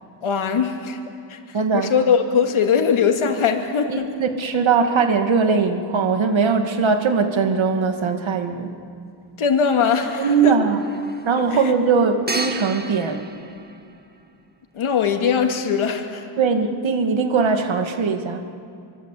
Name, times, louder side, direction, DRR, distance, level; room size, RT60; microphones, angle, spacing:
voice 1, 0.2-1.0 1.3-4.1 9.4-10.6 11.5-11.7 14.7-16.3, left 6 dB, 85° left, 4 dB, 2.6 m, -21 dB
voice 2, 1.5-1.9 3.9-8.7 10.2-10.8 11.3-13.2 16.4-18.4, right 5 dB, 70° right, 5 dB, 2.5 m, -20 dB
sound 1, 9.6-14.4, right 2 dB, 20° right, 1.7 m, -35 dB
26.5 x 24.5 x 8.6 m, 2.4 s
wide cardioid pair, 105°, 48 cm